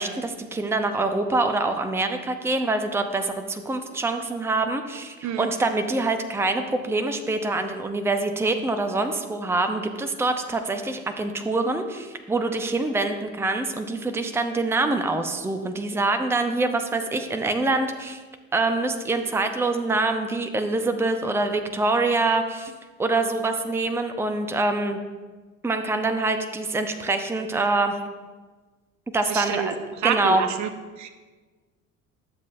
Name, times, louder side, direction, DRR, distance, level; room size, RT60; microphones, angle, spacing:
voice 1, 0.0-18.2 18.5-22.7 23.0-25.0 25.6-28.0 29.1-29.7 30.0-30.4, right 2 dB, 5° right, 7 dB, 0.7 m, -25 dB
voice 2, 29.3-29.7 30.0-30.7 31.0-31.1, right 9 dB, 45° right, 8 dB, 0.8 m, -27 dB
11.0 x 7.3 x 2.6 m, 1.3 s
figure-of-eight pair, 60°, 40 cm